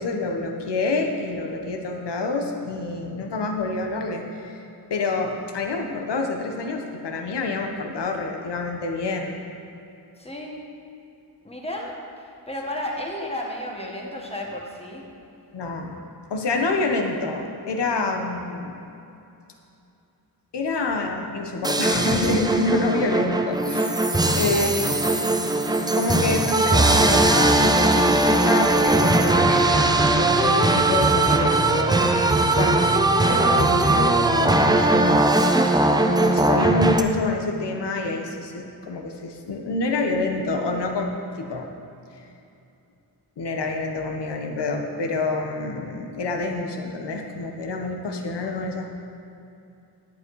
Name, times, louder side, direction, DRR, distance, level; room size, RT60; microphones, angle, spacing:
voice 1, 0.0-4.6 4.9-9.3 15.5-16.0 16.3-18.7 20.5-24.1 24.3-24.7 25.3-25.4 25.7-32.0 32.5-33.0 33.3-35.3 36.2-41.1 41.4-41.7 43.4-48.9, left 3 dB, 85° left, 3 dB, 1.2 m, -27 dB
voice 2, 10.2-10.6 11.4-11.9 12.5-15.1 24.5-24.9, left 1 dB, 15° left, -1 dB, 1.3 m, -33 dB
sound 1, 21.6-37.0, right 2 dB, 10° right, 0.4 m, -19 dB
10.5 x 8.7 x 4.7 m, 2.7 s
wide cardioid pair, 160°, 40 cm